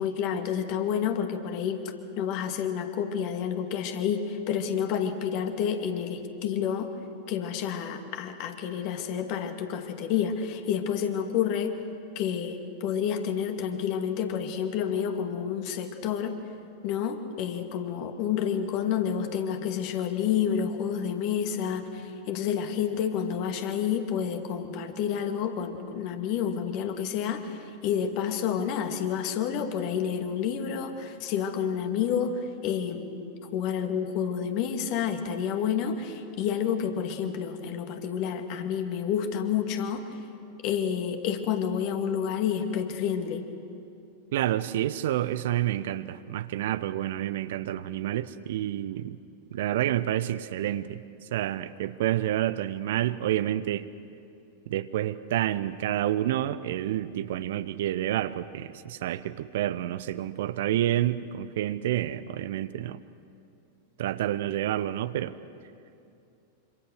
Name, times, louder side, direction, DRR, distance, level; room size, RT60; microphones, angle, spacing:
voice 1, 0.0-6.9 7.3-11.8 12.2-16.4 16.8-40.2 40.6-43.5, left 8 dB, 45° left, 5 dB, 2.3 m, -29 dB
voice 2, 44.3-49.2 49.5-51.0 51.3-53.9 54.7-63.0 64.0-65.3, right 12 dB, 55° right, 14 dB, 0.7 m, -29 dB
26.5 x 26.0 x 6.5 m, 2.6 s
figure-of-eight pair, 90°, 0 cm